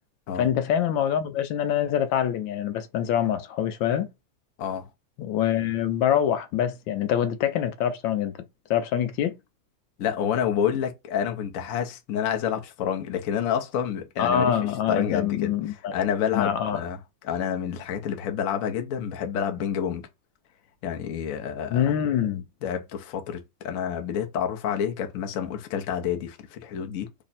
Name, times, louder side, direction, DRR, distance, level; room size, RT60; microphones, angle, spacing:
voice 1, 0.4-4.1 5.2-8.3 8.7-9.4 14.2-16.8 21.7-22.4, left 9 dB, 90° left, 1.3 m, -25 dB
voice 2, 10.0-14.5 14.9-17.0 17.2-20.1 20.8-21.9 22.6-27.1, left 8 dB, 65° left, 0.9 m, -29 dB
3.4 x 2.0 x 4.0 m
omnidirectional pair, 2.0 m